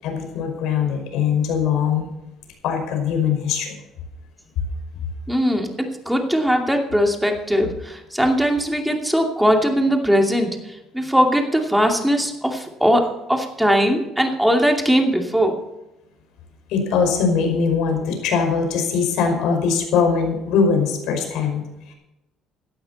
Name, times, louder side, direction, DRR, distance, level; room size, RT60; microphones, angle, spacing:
voice 1, 0.0-2.1 2.6-3.8 16.7-21.9, left 6 dB, 80° left, 3 dB, 5.2 m, -21 dB
voice 2, 5.3-10.6 10.9-13.0 13.3-15.6, equal, 5° right, 2 dB, 2.6 m, -20 dB
17.0 x 12.0 x 4.2 m, 0.93 s
cardioid pair, 130°, 0 cm